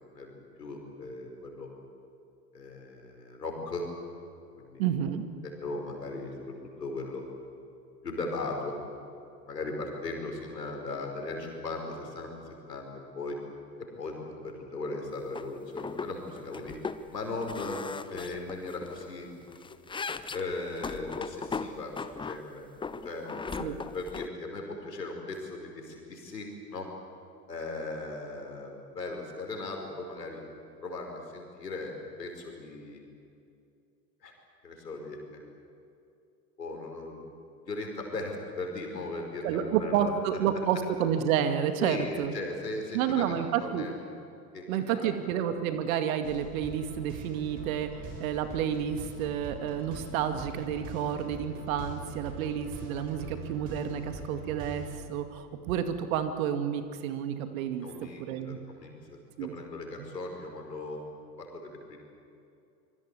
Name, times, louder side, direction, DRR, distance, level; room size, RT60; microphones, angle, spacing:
voice 1, 0.1-1.7 2.5-3.9 4.6-4.9 5.4-7.2 8.0-8.8 9.5-13.4 14.0-16.7 17.1-17.8 18.1-19.3 20.3-22.7 23.0-26.9 27.5-30.4 30.8-33.0 34.2-34.3 34.6-35.4 36.6-37.2 37.6-40.1 41.8-43.9 44.5-45.1 57.8-61.0 61.4-62.0, left 3 dB, 80° left, 2 dB, 5.4 m, -38 dB
voice 2, 4.8-5.2 23.6-23.8 39.4-42.3 42.9-43.9 44.7-57.9 58.3-58.6 59.4-59.5 60.0-60.1, right 9 dB, 55° right, 8 dB, 2.3 m, -30 dB
sound 1, 15.4-15.5 15.8-16.1 16.4-17.0 17.4-19.0 19.4-22.4 22.8-24.3, left 4 dB, 10° left, 0.7 m, -38 dB
sound 2, 46.2-54.9, right 2 dB, 40° right, 7.3 m, -43 dB
26.0 x 23.0 x 8.4 m, 2.6 s
figure-of-eight pair, 80°, 48 cm